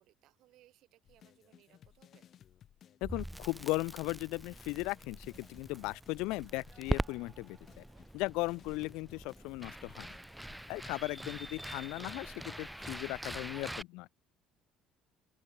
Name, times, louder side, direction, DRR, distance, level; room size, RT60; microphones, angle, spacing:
voice 1, 0.0-2.3 11.4-11.5, right 15 dB, 60° right, 4.4 m, -66 dB
sound 1, 1.0-11.7, left 10 dB, 50° left, 5.2 m, -60 dB
voice 2, 3.0-7.8 8.1-10.1 10.7-14.1, left 23 dB, 65° left, 0.6 m, -37 dB
Crackle, 3.0-13.8, right 1 dB, 5° right, 0.4 m, -43 dB
sound 2, 4.6-10.0, right 5 dB, 35° right, 6.7 m, -62 dB
open air
hypercardioid pair, 60°, 0 cm